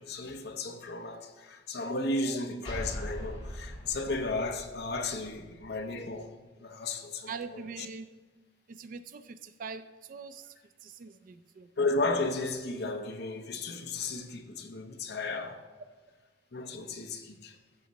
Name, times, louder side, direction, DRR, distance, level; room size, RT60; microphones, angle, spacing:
voice 1, 0.0-6.3 6.6-7.9 11.8-15.6 16.5-17.6, left 2 dB, 55° left, 0.8 m, -34 dB
sound 1, 2.6-6.1, equal, 25° left, 2.4 m, -42 dB
voice 2, 7.3-8.1 8.7-10.5 10.8-11.7, right 5 dB, 40° right, 0.3 m, -43 dB
13.0 x 6.2 x 3.0 m
head